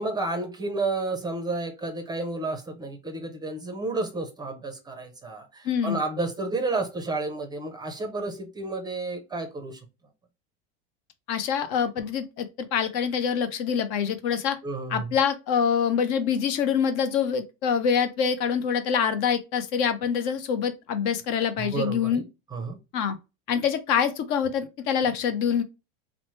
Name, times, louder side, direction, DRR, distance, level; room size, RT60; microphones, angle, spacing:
voice 1, 0.0-9.8 14.6-15.1 21.6-22.2 22.5-22.8, right 3 dB, 15° right, 0.5 m, -31 dB
voice 2, 5.6-6.0 11.3-14.6 14.9-22.2 22.9-23.2 23.5-25.6, left 7 dB, 55° left, 0.6 m, -25 dB
3.0 x 2.0 x 3.0 m
supercardioid pair, 115°, 30 cm